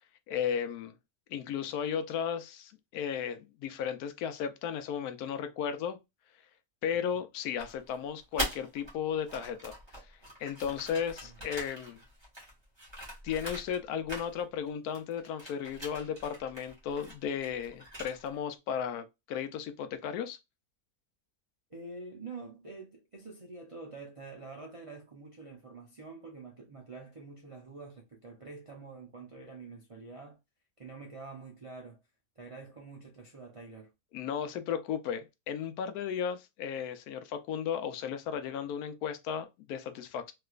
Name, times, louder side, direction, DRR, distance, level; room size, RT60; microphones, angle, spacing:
voice 1, 0.3-0.9 1.3-6.0 6.8-9.8 10.4-12.0 13.2-20.4 34.1-40.3, left 8 dB, 80° left, 1.1 m, -35 dB
sound 1, 7.6-8.9 9.2-13.8 14.1-14.7 14.9-18.4, equal, 20° right, 1.3 m, -42 dB
voice 2, 21.7-30.4 30.8-32.0 32.4-33.9, right 3 dB, 60° right, 0.3 m, -47 dB
3.2 x 2.8 x 2.3 m
omnidirectional pair, 1.6 m